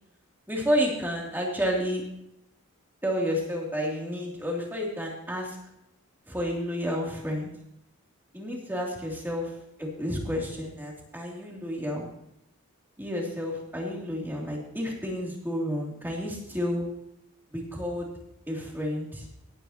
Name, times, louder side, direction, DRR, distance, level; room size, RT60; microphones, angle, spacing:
voice 1, 0.5-2.0 3.0-5.6 6.3-7.5 8.3-9.5 9.8-12.1 13.0-16.8 17.5-18.1 18.5-19.3, equal, 10° right, -2 dB, 2.9 m, -30 dB
18.0 x 9.7 x 2.9 m, 0.79 s
head